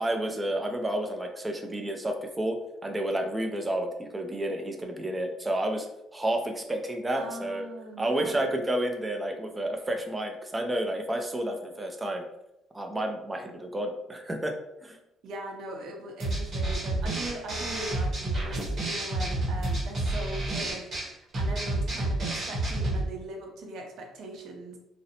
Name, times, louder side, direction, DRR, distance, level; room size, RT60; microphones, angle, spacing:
voice 1, 0.0-2.6 2.8-5.9 6.1-7.7 8.0-12.2 12.7-14.6 14.8-15.0, right 1 dB, 15° right, 4 dB, 0.4 m, -30 dB
voice 2, 7.2-8.5 15.2-24.8, right 1 dB, 70° right, 2 dB, 0.6 m, -40 dB
sound 1, 16.2-23.1, right 2 dB, 45° right, 0.9 m, -30 dB
2.5 x 2.0 x 2.7 m, 0.86 s
cardioid pair, 100°, 0 cm